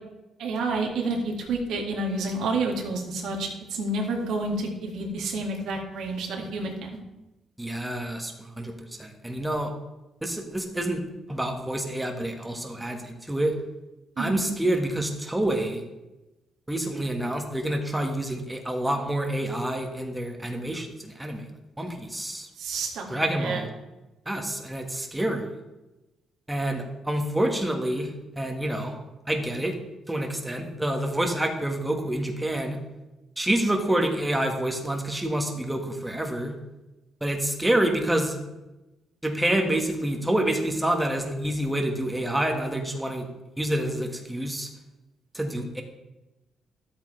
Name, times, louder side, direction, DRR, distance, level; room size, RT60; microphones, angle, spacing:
voice 1, 0.4-7.0 14.2-14.4 22.6-23.1 23.4-23.6, right 2 dB, 80° right, 1 dB, 2.1 m, -29 dB
voice 2, 7.6-9.7 10.2-11.0 11.3-13.6 14.2-15.8 16.7-21.4 21.8-22.5 23.1-23.7 24.3-25.6 26.5-28.1 28.4-28.9 29.3-29.8 30.1-32.8 33.4-36.5 37.2-38.4 39.2-43.3 43.6-44.7 45.3-45.8, right 1 dB, 10° right, 3 dB, 1.6 m, -27 dB
12.5 x 8.3 x 3.3 m, 1.0 s
cardioid pair, 90°, 0 cm